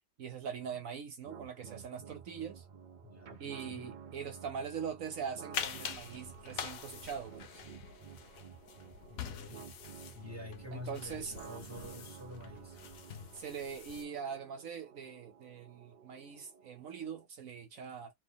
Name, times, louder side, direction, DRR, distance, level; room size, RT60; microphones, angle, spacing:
voice 1, 0.2-2.6 3.4-7.3 10.7-11.3 13.3-18.1, right 7 dB, 70° right, 1.2 m, -42 dB
sound 1, 1.3-17.3, right 7 dB, 50° right, 0.6 m, -52 dB
voice 2, 3.0-3.9 9.0-9.7 10.1-12.8, left 3 dB, 10° left, 1.7 m, -48 dB
sound 2, 5.5-14.0, left 8 dB, 75° left, 1.1 m, -45 dB
4.2 x 2.8 x 3.6 m
omnidirectional pair, 1.5 m